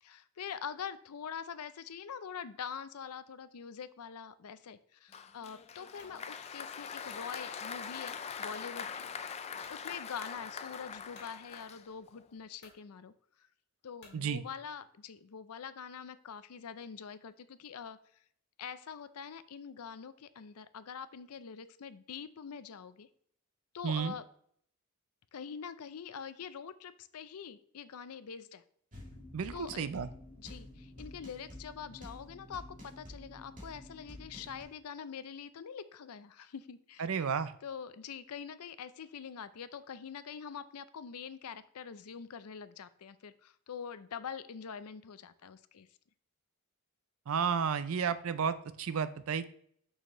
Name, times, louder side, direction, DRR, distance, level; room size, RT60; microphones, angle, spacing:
voice 1, 0.0-9.1 9.4-13.1 13.8-18.0 18.6-23.1 23.7-24.2 25.3-28.6 29.5-29.9 30.4-37.1 37.6-45.9, left 7 dB, 80° left, 14 dB, 0.5 m, -44 dB
Applause, 5.1-12.2, left 6 dB, 30° left, 0.3 m, -43 dB
sound 1, 6.0-6.2 6.8-7.3 8.3-8.5 9.0-9.1 9.6-9.8 11.1-11.3 12.1-12.2 12.6-12.8 14.0-14.2, left 3 dB, 50° left, 1.9 m, -58 dB
voice 2, 23.8-24.1 29.3-30.1 37.0-37.5 47.3-49.5, right 6 dB, 65° right, 13 dB, 0.5 m, -32 dB
sound 2, 28.9-34.6, left 1 dB, 35° right, 2.4 m, -50 dB
6.5 x 6.5 x 3.0 m, 0.65 s
head